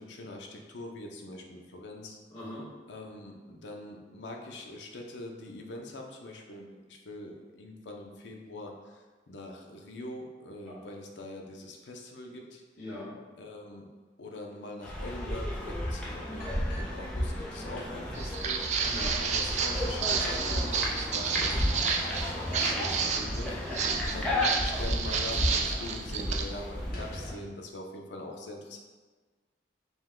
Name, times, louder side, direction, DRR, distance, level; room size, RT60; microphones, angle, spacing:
voice 1, 0.0-2.2 2.9-12.6 13.4-13.9 14.2-18.9 19.2-21.8 22.5-23.6 24.1-28.8, left 1 dB, 80° left, 1 dB, 0.6 m, -43 dB
voice 2, 2.3-2.7 10.6-10.7 12.8-13.1 18.9-19.2 23.8-24.3, left 1 dB, 30° left, -14 dB, 1.5 m, -41 dB
sound 1, 14.8-27.4, left 1 dB, 5° left, 0.6 m, -33 dB
sound 2, 16.4-17.5 17.8-17.9 18.3-18.4 19.0-19.3 20.1-20.4 21.3-21.6 22.5-22.9 23.6-23.7 24.0-24.2 25.1-25.3 25.6-25.7 26.0-26.2 26.8-27.5, equal, 55° left, 1.0 m, -45 dB
Walk footsteps, 18.1-26.4, right 6 dB, 40° right, 0.3 m, -31 dB
5.2 x 2.2 x 3.6 m, 1.3 s
head